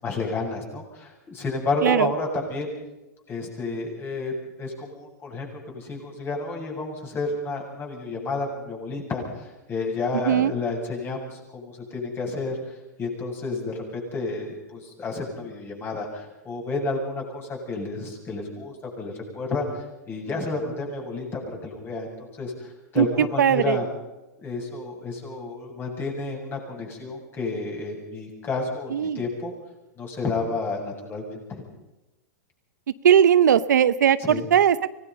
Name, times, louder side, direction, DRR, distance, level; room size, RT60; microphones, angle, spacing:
voice 1, 0.0-2.7 3.3-4.3 4.6-5.5 5.7-23.9 24.4-29.5 30.0-31.6 34.3-34.4, left 3 dB, 25° left, 0 dB, 7.7 m, -31 dB
voice 2, 23.0-23.8 28.9-29.2 32.9-34.9, right 9 dB, 85° right, 15 dB, 0.8 m, -19 dB
24.5 x 19.0 x 5.6 m, 1.0 s
hypercardioid pair, 125°, 9 cm